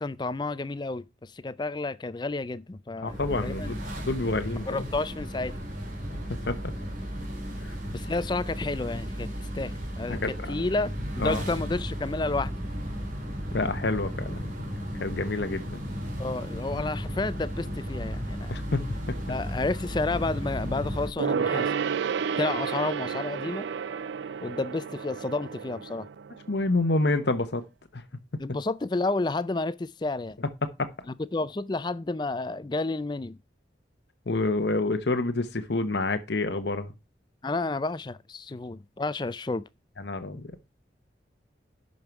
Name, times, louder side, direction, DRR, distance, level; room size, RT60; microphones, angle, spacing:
voice 1, 0.0-3.1 3.4-3.7 4.7-5.6 7.9-10.2 10.5-12.5 16.2-18.5 19.3-21.7 22.4-23.7 24.4-26.1 28.4-30.4 31.3-33.4 37.4-39.6, left 3 dB, 25° left, 0.4 m, -31 dB
voice 2, 3.0-4.6 6.3-6.6 7.6-7.7 10.1-10.5 11.2-11.4 13.5-14.4 14.8-15.8 18.5-18.8 19.1-19.2 26.5-27.6 27.9-28.0 30.8-30.9 34.3-36.9 40.0-40.5, left 2 dB, 65° left, 1.0 m, -28 dB
sound 1, 3.0-21.1, equal, 45° right, 2.5 m, -34 dB
Gong, 21.2-27.1 27.3-27.4, right 6 dB, 75° right, 0.4 m, -31 dB
11.0 x 5.4 x 4.6 m
head